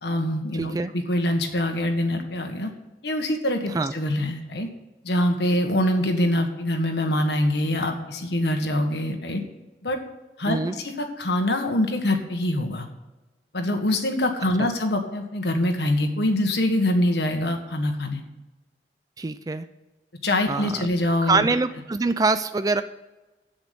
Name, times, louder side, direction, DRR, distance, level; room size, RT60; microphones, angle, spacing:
voice 1, 0.0-2.7 3.0-4.7 5.0-9.4 9.8-10.0 10.4-12.8 13.5-18.2 20.2-21.5, left 1 dB, 75° left, 4 dB, 1.6 m, -24 dB
voice 2, 0.5-0.9 3.7-3.9 10.5-10.7 14.6-14.7 19.2-19.7 20.5-20.9 21.2-22.8, right 3 dB, 20° right, 11 dB, 0.3 m, -24 dB
8.1 x 8.0 x 6.9 m, 1.1 s
head